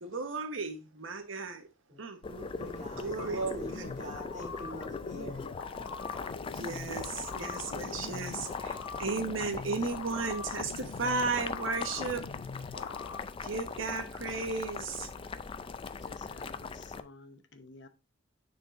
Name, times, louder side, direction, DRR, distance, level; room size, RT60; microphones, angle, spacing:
voice 1, 0.0-1.7 2.0-3.8 6.5-12.3 13.4-15.1, right 4 dB, 80° right, 1.1 m, -35 dB
Boiling, 2.2-17.0, left 4 dB, 25° left, 0.3 m, -40 dB
voice 2, 2.6-5.5, right 2 dB, 35° right, 3.3 m, -41 dB
sound 1, 3.2-13.2, left 5 dB, 90° left, 0.5 m, -43 dB
voice 3, 15.8-17.9, left 3 dB, 60° left, 0.9 m, -53 dB
9.6 x 4.4 x 2.5 m
head